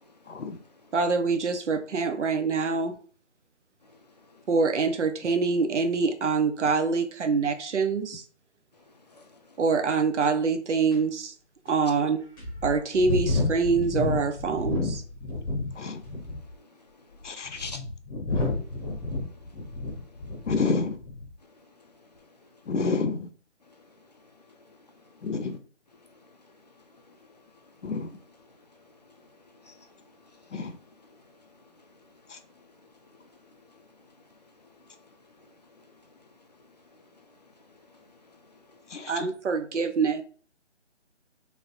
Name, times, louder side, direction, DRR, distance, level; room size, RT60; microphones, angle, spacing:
voice 1, 0.3-0.6 15.8-16.0 17.2-17.7 18.3-18.5 20.5-21.0 22.7-23.3 25.2-25.6 27.8-28.1 30.5-30.7 32.3-32.4 38.9-39.3, left 4 dB, 80° left, 0.8 m, -29 dB
voice 2, 0.9-3.0 4.5-8.2 9.6-11.3 11.7-12.2 12.6-15.0 39.1-40.2, right 4 dB, 75° right, 0.7 m, -25 dB
voice 3, 9.1-9.4 17.5-17.8 19.1-19.2 25.1-25.2 27.0-27.2 27.8-27.9 29.2-29.3 29.6-30.1 30.3-30.6 36.9-37.0 38.0-38.1 38.5-38.8, left 3 dB, 35° left, 0.5 m, -47 dB
sound 1, 10.2-10.3 10.9-11.0 11.7-11.8 12.4-15.7 16.0-16.5 17.2-20.7 21.0-21.3, left 2 dB, 20° left, 0.8 m, -30 dB
3.3 x 3.2 x 2.5 m
figure-of-eight pair, 165°, 35 cm